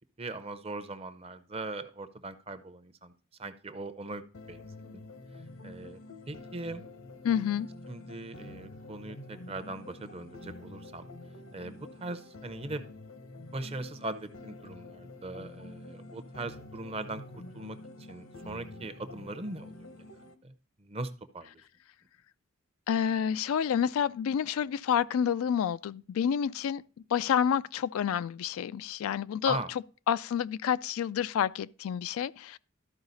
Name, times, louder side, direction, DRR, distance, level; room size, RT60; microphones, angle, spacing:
voice 1, 0.2-3.1 3.4-4.7 5.6-6.0 6.3-6.8 7.9-11.1 11.5-12.8 13.5-17.2 17.5-17.8 18.1-20.1 20.4-20.5 20.8-21.6 29.4-29.7, right 2 dB, 30° right, 0.6 m, -40 dB
sound 1, 4.3-20.3, left 2 dB, 75° left, 0.9 m, -47 dB
voice 2, 7.2-7.7 22.9-26.8 27.1-29.6 30.1-32.6, left 8 dB, 90° left, 0.3 m, -29 dB
13.0 x 4.8 x 4.0 m
head